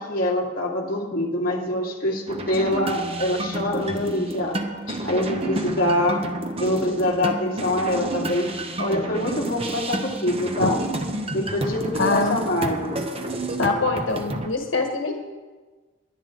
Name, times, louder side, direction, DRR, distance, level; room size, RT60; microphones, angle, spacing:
voice 1, 0.0-4.6 5.0-6.2 6.6-8.5 8.8-10.8 11.3-13.1, left 1 dB, 45° left, -3 dB, 2.4 m, -24 dB
sound 1, 2.3-14.5, right 1 dB, 30° right, 1.0 m, -30 dB
voice 2, 12.0-12.4 13.6-15.1, left 3 dB, 85° left, 3 dB, 1.4 m, -23 dB
22.5 x 10.0 x 3.9 m, 1.3 s
head